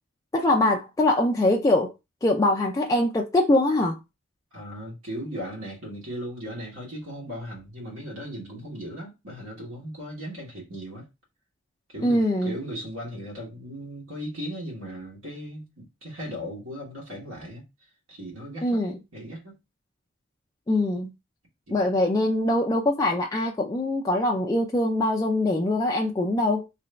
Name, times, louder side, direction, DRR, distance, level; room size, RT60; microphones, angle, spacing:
voice 1, 0.3-1.9 2.2-4.0 12.0-12.5 18.6-19.0 20.7-21.1 21.7-26.7, left 1 dB, 15° left, 0.3 m, -23 dB
voice 2, 4.5-11.1 11.9-17.7 18.1-18.8 19.1-19.6 21.7-21.8, equal, 75° right, 1.4 m, -37 dB
2.9 x 2.5 x 3.1 m
head